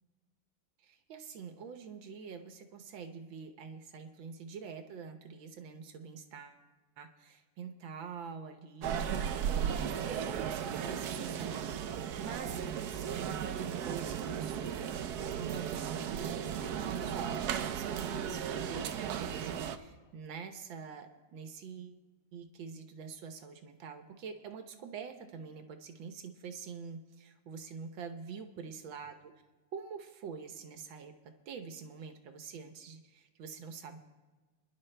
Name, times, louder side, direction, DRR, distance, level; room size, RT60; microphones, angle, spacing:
voice 1, 0.8-6.6 7.0-14.9 15.3-22.0 22.3-29.3 29.7-31.1 31.5-34.0, right 6 dB, 80° right, 6 dB, 1.7 m, -46 dB
sound 1, 8.8-19.8, right 8 dB, 65° right, 1.1 m, -35 dB
27.5 x 11.0 x 3.3 m, 1.3 s
omnidirectional pair, 2.1 m